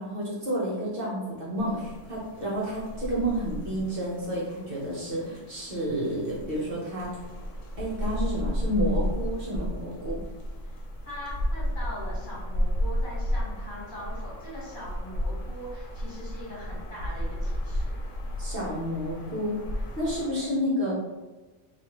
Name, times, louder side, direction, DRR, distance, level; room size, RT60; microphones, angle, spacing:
voice 1, 0.0-7.1 7.8-10.2 18.4-19.6 20.0-21.0, equal, 50° right, -6 dB, 0.9 m, -30 dB
sound 1, 1.6-20.3, equal, 80° left, 1.0 m, -33 dB
voice 2, 11.0-18.0 20.3-20.5, left 1 dB, 45° left, -7 dB, 1.1 m, -41 dB
3.0 x 2.4 x 2.9 m, 1.2 s
omnidirectional pair, 1.3 m